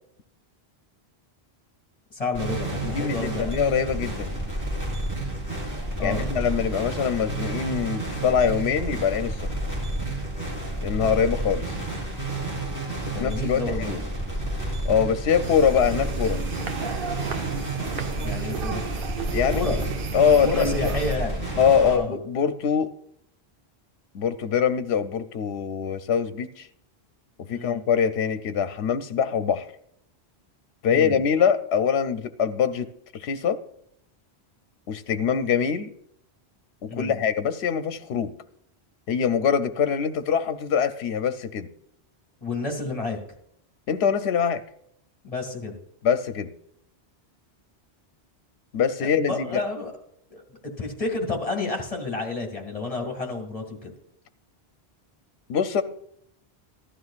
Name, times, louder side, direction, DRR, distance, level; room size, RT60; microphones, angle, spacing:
voice 1, 2.1-3.5 6.0-6.3 13.0-13.9 18.2-18.8 19.5-19.8 20.4-21.4 21.8-22.1 27.5-27.8 30.9-31.2 36.9-37.2 42.4-43.2 45.2-45.8 49.0-49.9 50.3-53.9, left 3 dB, 35° left, 2 dB, 2.1 m, -30 dB
sound 1, 2.3-22.0, right 2 dB, 15° right, 3.6 m, -30 dB
voice 2, 2.8-4.4 6.0-9.4 10.8-11.6 13.2-14.0 14.8-16.4 19.3-19.8 20.1-20.9 21.6-22.9 24.1-26.7 27.5-29.7 30.8-32.9 33.1-33.6 34.9-35.9 36.8-38.3 39.1-41.7 43.9-44.6 46.0-46.5 48.7-49.6 55.5-55.8, left 7 dB, 80° left, 10 dB, 0.9 m, -23 dB
sound 2, 15.4-21.2, right 5 dB, 60° right, 0.8 m, -33 dB
15.0 x 11.5 x 2.4 m, 0.71 s
omnidirectional pair, 1.1 m